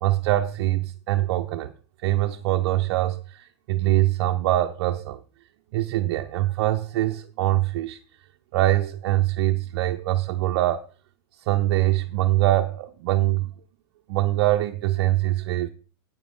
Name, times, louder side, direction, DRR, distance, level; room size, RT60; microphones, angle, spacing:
voice 1, 0.0-1.7 2.0-5.2 5.7-8.0 8.5-10.9 11.5-13.5 14.1-15.7, right 15 dB, 60° right, 0.6 m, -23 dB
8.9 x 8.8 x 3.7 m
supercardioid pair, 145°, 14 cm